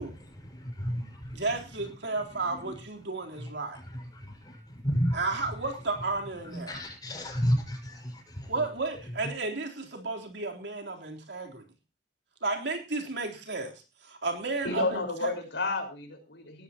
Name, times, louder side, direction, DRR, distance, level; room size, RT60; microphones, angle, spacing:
voice 1, 0.0-1.9 2.3-2.8 3.3-5.7 6.4-8.7 9.0-9.3, equal, 25° left, 6.0 m, -34 dB
voice 2, 1.3-3.8 5.1-6.7 8.5-11.7 12.4-13.7 14.0-15.3, right 3 dB, 75° right, 3.8 m, -33 dB
voice 3, 14.6-16.6, left 3 dB, 80° left, 5.1 m, -31 dB
19.5 x 14.0 x 3.0 m
head